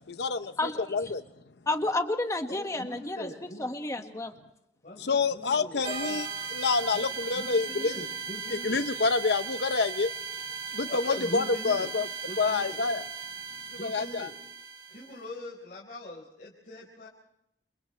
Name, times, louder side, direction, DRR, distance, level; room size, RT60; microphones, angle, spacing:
voice 1, 0.1-0.5 0.9-1.2 5.0-7.9 8.5-10.1 10.7-12.1 12.4-13.0 13.8-14.3, left 4 dB, 65° left, 10 dB, 0.8 m, -27 dB
voice 2, 0.6-1.1 1.7-3.3 3.6-4.3, left 2 dB, 20° left, 5 dB, 1.6 m, -31 dB
voice 3, 2.5-3.7 4.0-4.2 4.8-6.2 6.9-7.1 7.3-8.8 10.9-11.9 12.2-12.8 13.7-14.3 14.9-17.1, left 1 dB, 45° left, -3 dB, 4.5 m, -42 dB
sound 1, 5.8-15.2, right 6 dB, 35° right, 4.7 m, -37 dB
29.0 x 28.5 x 3.3 m, 0.78 s
head